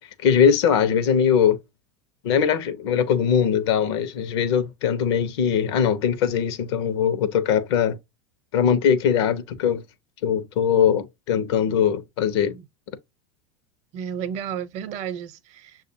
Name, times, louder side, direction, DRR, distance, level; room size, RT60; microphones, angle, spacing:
voice 1, 0.2-1.6 2.2-8.0 8.5-9.8 10.2-12.5, left 8 dB, 65° left, 0.7 m, -21 dB
voice 2, 13.9-15.8, right 8 dB, 50° right, 0.7 m, -32 dB
6.4 x 2.4 x 2.6 m
hypercardioid pair, 90°, 15 cm